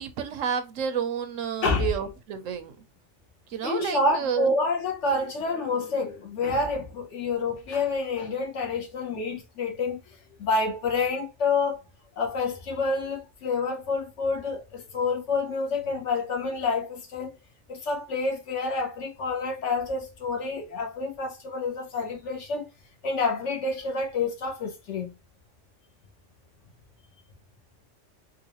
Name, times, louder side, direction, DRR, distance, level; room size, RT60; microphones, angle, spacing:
voice 1, 0.0-2.8 3.5-4.5, right 7 dB, 85° right, 1.1 m, -30 dB
voice 2, 3.6-10.0 10.4-11.8 12.2-17.4 17.7-22.7 23.0-25.1, left 3 dB, 70° left, 1.3 m, -28 dB
3.8 x 2.5 x 2.9 m
omnidirectional pair, 1.3 m